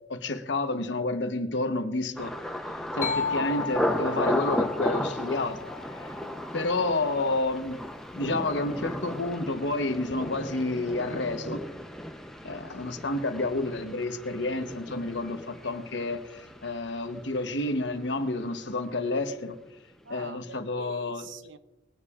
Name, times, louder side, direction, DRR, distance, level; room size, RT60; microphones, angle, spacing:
voice 1, 0.1-2.3 2.9-5.6 6.0-6.1 6.5-7.8 8.1-11.6 12.4-19.6 20.1-21.3, left 2 dB, 70° left, 1.0 m, -30 dB
Thunder, 2.2-17.9 18.2-18.8 19.2-19.5, equal, 5° left, 0.6 m, -35 dB
sound 1, 3.0-6.7, left 5 dB, 40° left, 0.4 m, -35 dB
voice 2, 20.1-21.6, right 4 dB, 75° right, 0.7 m, -45 dB
20.5 x 9.8 x 2.4 m
head